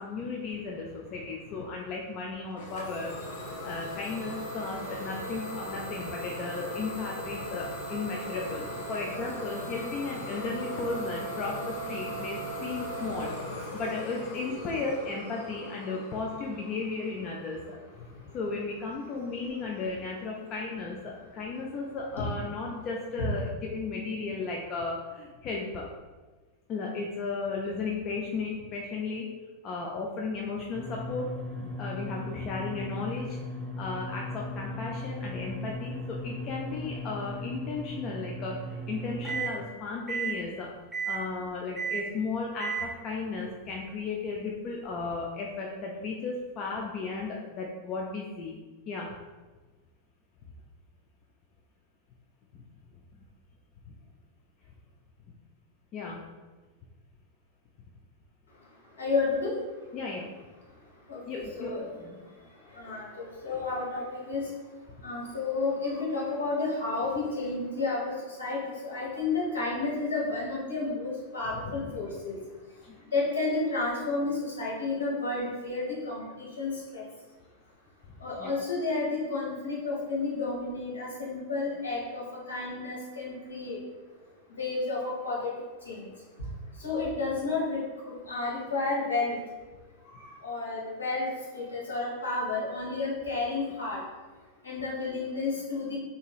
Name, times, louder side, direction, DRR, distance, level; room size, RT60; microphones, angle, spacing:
voice 1, 0.0-3.1 3.6-13.3 13.7-17.8 18.3-25.9 26.7-29.3 29.6-31.3 31.6-33.4 33.8-40.7 41.1-48.6 48.9-49.1 55.9-56.2 59.9-60.3 61.3-62.2 71.7-72.0 72.8-73.0 78.4-78.5, left 4 dB, 35° left, -1 dB, 0.4 m, -35 dB
Idling / Domestic sounds home sounds, 2.6-18.1, equal, 55° left, 0.8 m, -38 dB
sound 1, 30.7-39.6 40.1-40.4 40.9-41.2 41.8-42.1 42.6-42.9, right 1 dB, 10° right, 0.8 m, -36 dB
voice 2, 59.0-59.5 61.1-61.2 61.6-61.9 62.7-64.5 65.0-72.3 73.1-77.0 78.2-82.2 82.5-83.8 84.5-85.5 85.8-86.1 86.8-87.8 88.3-89.3 90.2-94.0 94.6-96.0, left 3 dB, 70° left, -5 dB, 1.3 m, -31 dB
3.9 x 2.7 x 2.3 m, 1.3 s
figure-of-eight pair, 90°, 0 cm